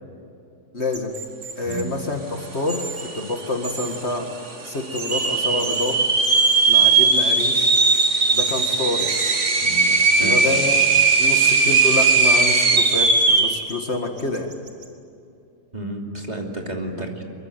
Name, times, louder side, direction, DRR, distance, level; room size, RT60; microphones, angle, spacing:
voice 1, 0.7-1.1 1.6-4.3 4.6-6.0 6.7-7.8 8.3-9.1 10.2-10.9 11.2-14.5 17.0-17.1, left 2 dB, 45° left, 3 dB, 2.0 m, -27 dB
sound 1, 0.9-1.8 2.7-3.0 3.6-4.0 5.0-5.3 5.6-5.9 6.2-6.6 7.7-8.1 8.3-8.7 9.0-9.3 9.9-11.3 12.9-13.7 14.2-14.9, right 4 dB, 75° right, 3.2 m, -34 dB
sound 2, 2.7-2.8 3.0-3.6 4.1-4.2 4.9-13.6, right 4 dB, 50° right, 2.2 m, -18 dB
voice 2, 9.6-10.5 15.7-17.2, right 1 dB, 25° right, 1 dB, 3.0 m, -31 dB
24.0 x 23.0 x 9.5 m, 2.6 s
omnidirectional pair, 1.7 m